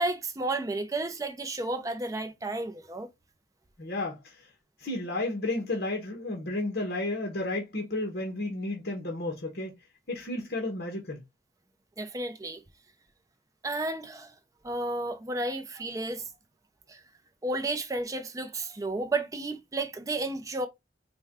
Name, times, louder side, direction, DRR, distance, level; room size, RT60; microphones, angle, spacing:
voice 1, 0.0-3.1 12.0-12.6 13.6-14.3 14.6-16.2 16.9-17.0 17.4-20.7, right 2 dB, 20° right, 0.5 m, -32 dB
voice 2, 3.8-4.4 4.8-9.7 10.1-11.2, left 2 dB, 60° left, 1.0 m, -32 dB
4.4 x 2.2 x 3.5 m
head